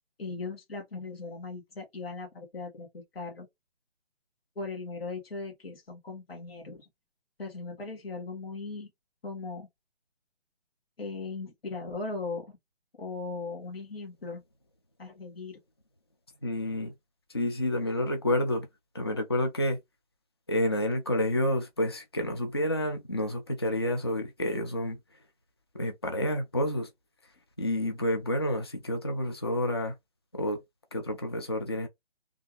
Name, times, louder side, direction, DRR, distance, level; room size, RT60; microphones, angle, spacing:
voice 1, 0.2-3.5 4.6-6.9 7.4-8.9 9.2-9.7 11.0-12.5 13.0-14.4 15.0-15.6, left 3 dB, 60° left, 2.0 m, -38 dB
voice 2, 16.4-16.9 17.3-18.7 18.9-19.8 20.5-25.0 25.7-26.9 27.6-29.9 30.3-30.6 30.9-31.9, left 1 dB, 25° left, 0.4 m, -29 dB
3.4 x 2.6 x 3.2 m
figure-of-eight pair, 155°, 34 cm